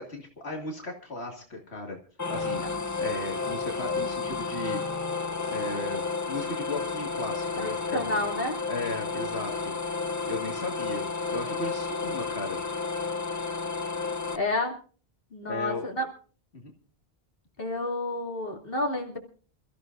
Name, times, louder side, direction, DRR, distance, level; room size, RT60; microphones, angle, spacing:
voice 1, 0.0-2.0 2.3-2.6 3.0-4.8 5.4-6.0 6.3-8.2 8.7-9.7 10.3-11.1 11.3-12.6 15.4-15.9 16.5-16.6, left 2 dB, 80° left, 1 dB, 2.5 m, -36 dB
sound 1, 2.2-14.4, left 4 dB, 20° left, 0.6 m, -31 dB
voice 2, 7.6-8.6 14.3-14.7 15.3-16.0 17.6-19.2, left 2 dB, 60° left, 1 dB, 3.0 m, -30 dB
28.0 x 14.5 x 2.6 m, 0.41 s
omnidirectional pair, 1.1 m